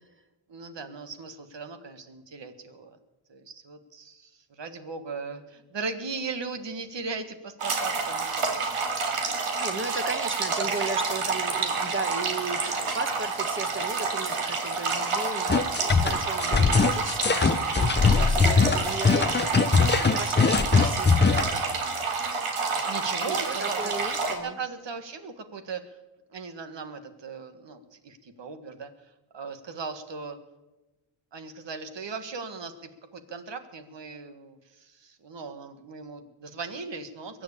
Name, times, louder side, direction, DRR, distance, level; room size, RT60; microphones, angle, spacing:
voice 1, 0.5-3.0 3.3-8.8 22.8-23.9 24.4-25.8 26.3-28.9 29.3-30.4 31.3-32.7 33.1-37.4, right 4 dB, 60° right, 9 dB, 1.8 m, -38 dB
sound 1, 7.6-24.3, right 4 dB, 85° right, 2.5 m, -29 dB
voice 2, 9.3-21.7 23.3-24.6, right 3 dB, 25° right, 8 dB, 1.7 m, -36 dB
sound 2, 15.5-21.5, left 5 dB, 20° left, 0.7 m, -21 dB
22.0 x 7.8 x 8.5 m, 1.1 s
cardioid pair, 90°, 49 cm